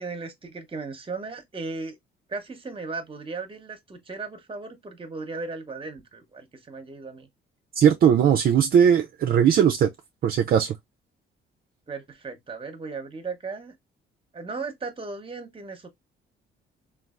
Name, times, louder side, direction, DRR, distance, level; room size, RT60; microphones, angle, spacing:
voice 1, 0.0-2.0 2.3-7.3 11.9-13.7 14.3-15.9, right 4 dB, 25° right, 0.8 m, -36 dB
voice 2, 7.7-9.9 10.2-10.8, right 8 dB, 50° right, 0.4 m, -19 dB
3.2 x 2.3 x 2.4 m
cardioid pair, 90°, 20 cm